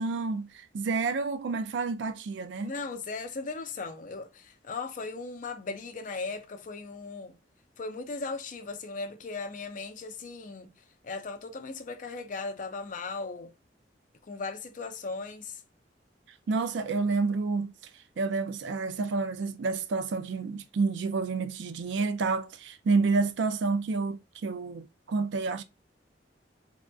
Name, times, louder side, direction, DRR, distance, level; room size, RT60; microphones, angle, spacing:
voice 1, 0.0-2.7 16.5-17.7 18.2-25.6, right 4 dB, 80° right, 0.4 m, -29 dB
voice 2, 2.6-7.4 7.8-10.7 11.0-13.5 14.3-15.6, left 3 dB, 45° left, 0.5 m, -37 dB
3.5 x 2.5 x 2.2 m
head